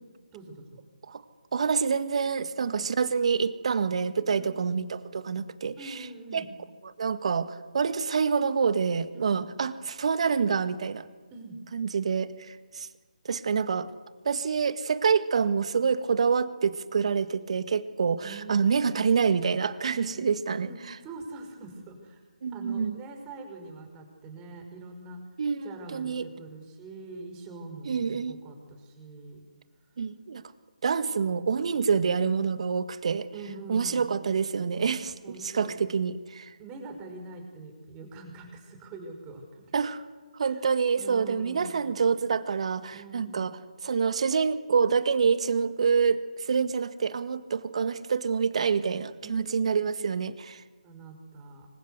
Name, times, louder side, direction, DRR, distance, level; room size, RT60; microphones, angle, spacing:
voice 1, 0.3-0.8 4.3-4.6 5.8-6.5 9.1-9.4 11.3-11.6 18.2-18.7 20.0-20.2 20.7-22.2 22.5-25.2 25.6-29.4 33.3-34.1 35.0-35.8 36.6-39.7 40.4-40.6 41.0-41.9 42.9-43.6 49.2-49.6 50.8-51.7, right 3 dB, 15° right, 4 dB, 5.5 m, -44 dB
voice 2, 1.5-6.1 6.3-6.4 7.0-11.1 11.7-12.9 13.3-13.9 14.3-20.7 22.4-23.0 25.4-26.2 27.9-28.3 30.0-30.4 30.8-33.3 33.7-36.5 39.7-40.0 40.3-50.6, right 6 dB, 50° right, 12 dB, 1.8 m, -27 dB
26.0 x 24.0 x 8.2 m, 1.4 s
figure-of-eight pair, 150°, 4 cm